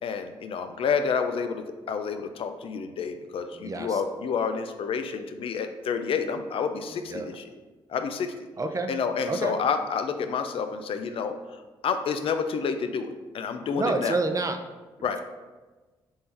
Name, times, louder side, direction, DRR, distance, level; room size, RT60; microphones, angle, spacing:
voice 1, 0.0-7.4 7.9-8.3 8.9-14.2 15.0-15.2, left 6 dB, 60° left, 8 dB, 0.4 m, -29 dB
voice 2, 3.6-4.0 7.1-7.3 8.6-8.9 9.3-9.5 13.8-14.6, right 3 dB, 30° right, 6 dB, 0.5 m, -28 dB
3.6 x 2.6 x 4.4 m, 1.2 s
supercardioid pair, 55°, 11 cm